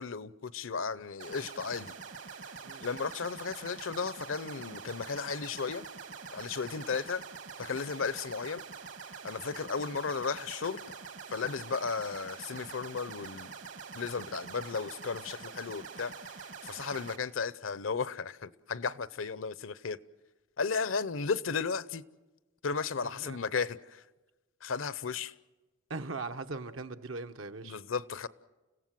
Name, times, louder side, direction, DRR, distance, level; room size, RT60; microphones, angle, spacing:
voice 1, 0.0-1.9 2.8-5.9 6.3-7.2 7.6-8.6 9.2-10.8 11.3-13.5 13.9-20.0 20.6-22.0 22.6-24.0 24.6-25.3 27.6-28.3, left 5 dB, 85° left, 0.8 m, -35 dB
sound 1, 1.2-17.2, right 5 dB, 70° right, 1.7 m, -45 dB
voice 2, 23.0-23.4 25.9-27.8, right 3 dB, 85° right, 1.2 m, -40 dB
30.0 x 16.5 x 7.6 m
head